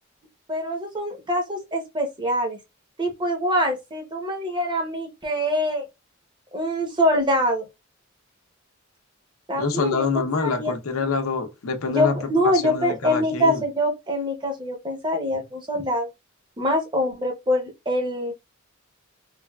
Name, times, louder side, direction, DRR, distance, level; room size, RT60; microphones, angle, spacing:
voice 1, 0.5-2.6 3.0-5.8 6.5-7.7 9.5-10.1 10.4-10.7 11.9-16.1 16.6-18.3, equal, 20° right, 0.7 m, -24 dB
voice 2, 9.5-12.2 12.4-13.6, left 4 dB, 85° left, 0.6 m, -26 dB
3.3 x 2.3 x 2.2 m
head